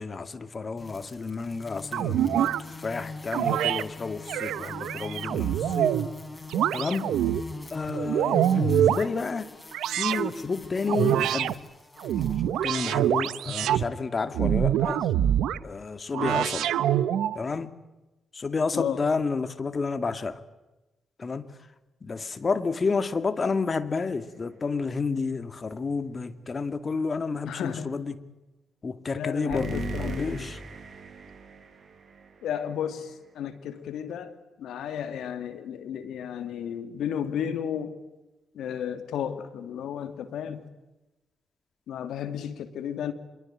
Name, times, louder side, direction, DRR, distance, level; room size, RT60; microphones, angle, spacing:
voice 1, 0.0-2.5 2.8-6.0 6.7-7.1 7.7-9.5 10.0-11.6 12.1-15.1 15.6-16.7 17.3-17.7 18.3-20.4 21.2-21.5 22.0-28.2 28.8-30.6, left 4 dB, 45° left, 2.4 m, -30 dB
sound 1, 0.8-13.5, left 3 dB, 25° left, 4.2 m, -44 dB
sound 2, 1.9-2.6 3.3-3.8 4.3-6.1 6.5-7.4 7.9-9.1 9.7-10.3 10.9-11.5 12.0-13.9 14.3-15.6 16.1-17.4, right 11 dB, 75° right, 0.9 m, -25 dB
voice 2, 18.7-19.0 27.4-28.1 29.1-30.5 32.4-38.0 38.5-40.7 41.9-43.1, left 9 dB, 75° left, 2.6 m, -33 dB
sound 3, 24.0-24.7 29.5-33.2, right 4 dB, 55° right, 5.9 m, -40 dB
26.5 x 23.5 x 9.0 m
hypercardioid pair, 45°, 0 cm